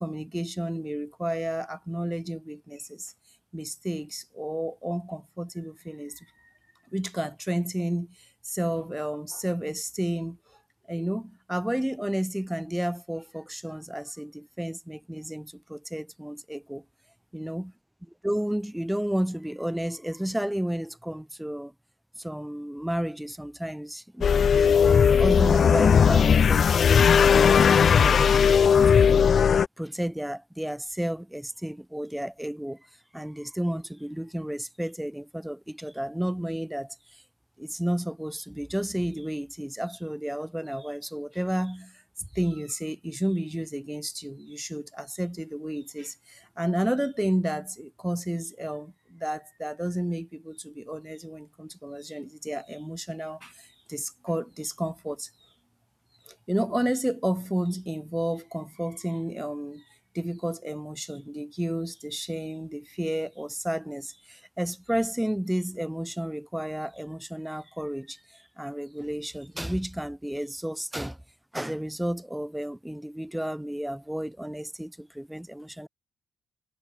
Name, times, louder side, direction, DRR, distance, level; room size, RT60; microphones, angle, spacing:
voice 1, 0.0-3.1 3.5-6.3 6.9-8.1 8.5-10.4 10.9-16.8 17.3-17.7 18.2-21.7 22.2-29.3 29.8-32.9 33.1-37.2 37.6-42.0 42.3-55.3 56.3-59.8 60.1-71.2 71.5-75.9, equal, 5° right, 2.8 m, -32 dB
sound 1, 24.2-29.7, left 7 dB, 45° left, 0.9 m, -18 dB
cardioid pair, 105°, 0 cm